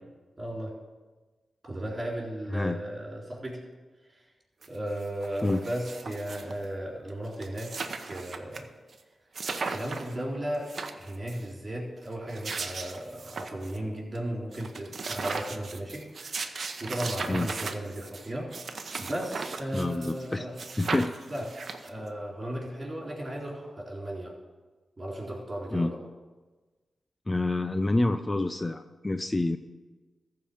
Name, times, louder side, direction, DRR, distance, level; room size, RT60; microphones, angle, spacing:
voice 1, 0.4-0.8 1.6-3.6 4.0-4.3 4.7-7.8 8.0-8.7 9.6-18.5 19.0-20.6 21.3-21.6 21.8-24.4 25.0-26.0, right 1 dB, 35° right, -3 dB, 4.0 m, -35 dB
sound 1, 4.6-4.7 5.0-6.6 7.1-7.2 7.3-8.6 8.9-9.0 9.3-10.1 10.5-11.4 12.1-13.8 14.1-14.2 14.5-20.3 20.6-22.1, right 4 dB, 60° right, 0.8 m, -37 dB
voice 2, 19.7-20.5 20.8-21.1 25.7-25.9 27.3-29.6, left 2 dB, 25° left, 9 dB, 0.5 m, -27 dB
14.0 x 4.8 x 7.1 m, 1.3 s
cardioid pair, 65°, 0 cm